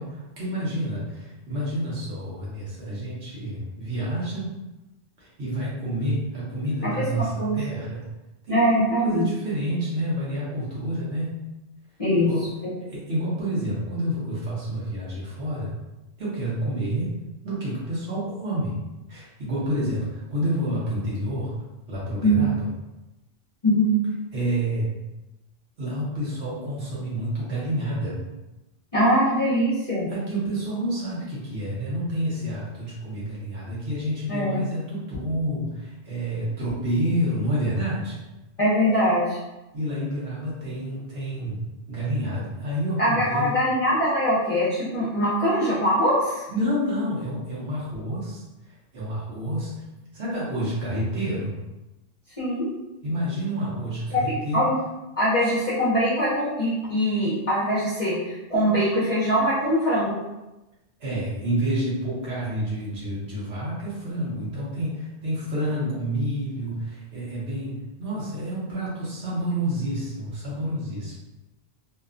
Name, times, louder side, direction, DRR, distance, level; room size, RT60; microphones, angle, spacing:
voice 1, 0.0-4.5 5.2-8.1 8.4-8.6 9.0-11.4 12.2-12.4 12.9-15.7 16.2-17.1 17.4-18.8 19.1-21.6 21.9-22.7 24.3-24.9 25.8-28.2 30.1-38.2 39.7-43.5 46.5-49.8 50.1-51.6 53.0-54.7 55.4-55.5 61.0-71.2, right 1 dB, 65° right, -7 dB, 1.2 m, -29 dB
voice 2, 8.5-9.2 12.0-12.3 12.6-12.7 22.2-22.4 23.6-23.9 28.9-30.1 34.3-34.6 38.6-39.4 43.0-46.4 52.4-52.7 54.1-54.2 54.5-54.7 55.2-60.2, equal, 40° left, -10 dB, 0.7 m, -22 dB
2.8 x 2.2 x 2.4 m, 1.0 s
omnidirectional pair, 1.2 m